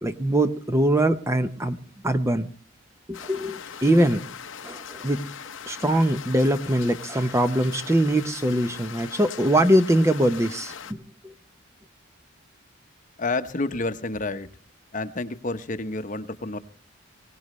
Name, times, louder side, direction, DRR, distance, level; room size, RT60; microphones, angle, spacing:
voice 1, 0.0-1.8 2.0-2.5 3.1-4.3 4.6-5.3 5.7-11.3, right 1 dB, 15° right, 9 dB, 0.7 m, -22 dB
sound 1, 3.1-10.9, left 7 dB, 65° left, 0.8 m, -40 dB
voice 2, 13.2-14.5 14.9-16.6, left 2 dB, 40° left, 10 dB, 0.9 m, -29 dB
23.5 x 17.5 x 3.2 m, 0.40 s
head